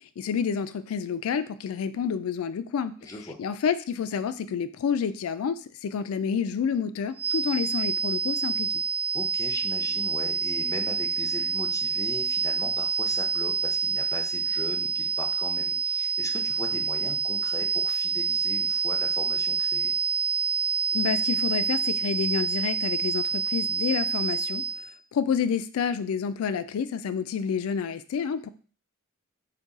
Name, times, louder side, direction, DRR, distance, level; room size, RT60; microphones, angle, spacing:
voice 1, 0.2-3.1 3.4-8.7 20.9-24.6 25.1-28.5, left 7 dB, 80° left, 13 dB, 0.3 m, -29 dB
voice 2, 3.0-3.4 9.1-19.9, left 2 dB, 15° left, 4 dB, 0.5 m, -38 dB
sound 1, 7.2-24.9, right 5 dB, 30° right, 0.7 m, -27 dB
3.9 x 2.3 x 3.6 m, 0.40 s
head